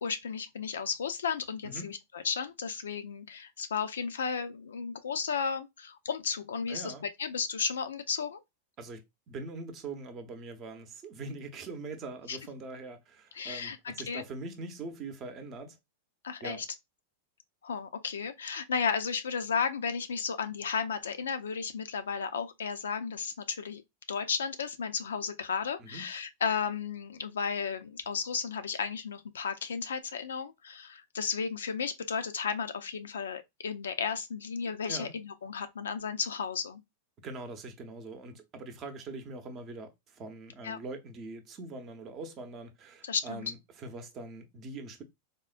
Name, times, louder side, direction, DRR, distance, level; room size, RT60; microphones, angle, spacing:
voice 1, 0.0-6.9 7.2-8.4 12.3-12.4 13.3-14.2 16.2-16.7 17.6-23.8 24.1-36.8 40.6-40.8 43.0-43.5, left 6 dB, 85° left, 0.4 m, -34 dB
voice 2, 6.7-7.0 8.8-15.8 16.4-16.6 25.8-26.1 34.9-35.2 37.2-45.0, right 3 dB, 35° right, 0.7 m, -42 dB
3.5 x 2.1 x 2.4 m
hypercardioid pair, 105°, 0 cm